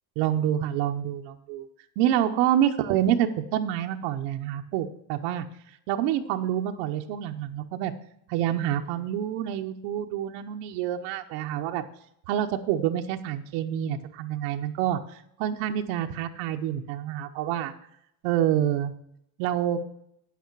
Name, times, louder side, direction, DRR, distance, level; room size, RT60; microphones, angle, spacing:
voice 1, 0.2-1.7 2.0-5.5 5.9-7.9 8.3-11.8 12.3-17.7 18.2-18.9 19.4-19.8, right 11 dB, 85° right, 5 dB, 0.9 m, -27 dB
9.8 x 8.3 x 4.6 m, 0.73 s
cardioid pair, 150°, 42 cm